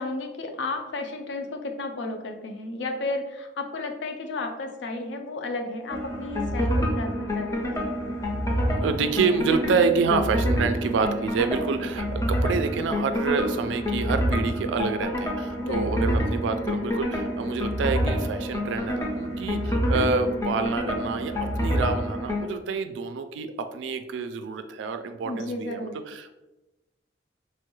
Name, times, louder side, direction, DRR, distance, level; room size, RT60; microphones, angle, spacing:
voice 1, 0.0-7.9 15.6-16.0 25.2-25.9, left 2 dB, 75° left, 5 dB, 0.4 m, -33 dB
sound 1, 5.9-22.5, equal, 15° left, 0.4 m, -27 dB
voice 2, 8.8-26.4, right 5 dB, 80° right, 8 dB, 0.3 m, -27 dB
3.1 x 2.2 x 3.0 m, 1.0 s
head